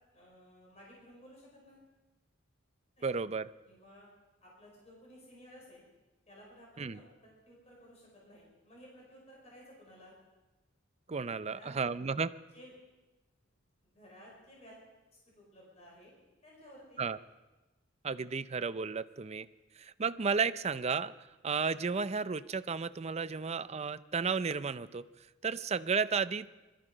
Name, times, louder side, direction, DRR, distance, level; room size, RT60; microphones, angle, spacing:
voice 1, 0.1-1.9 3.0-3.1 3.7-4.1 4.4-5.9 6.3-10.1 11.2-11.7 12.5-12.7 13.9-14.8 15.3-16.1 16.4-17.0, equal, 35° left, -3 dB, 5.1 m, -56 dB
voice 2, 3.0-3.5 6.8-7.0 11.1-12.3 17.0-17.2 18.0-19.5 19.8-21.1 21.4-25.1 25.4-26.5, right 5 dB, 35° right, 13 dB, 0.5 m, -33 dB
21.5 x 13.5 x 5.0 m, 1.1 s
head